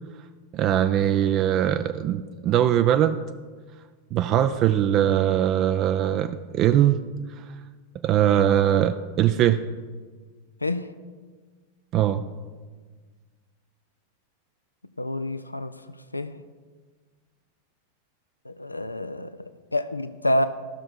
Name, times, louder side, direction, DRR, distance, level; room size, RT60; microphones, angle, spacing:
voice 1, 0.5-3.2 4.1-7.0 8.0-9.6 11.9-12.2, right 11 dB, 35° right, 9 dB, 0.4 m, -21 dB
voice 2, 15.0-15.7 16.1-16.3 18.5-20.5, left 1 dB, 85° left, 12 dB, 0.4 m, -27 dB
14.0 x 6.4 x 4.5 m, 1.5 s
figure-of-eight pair, 90°, 0 cm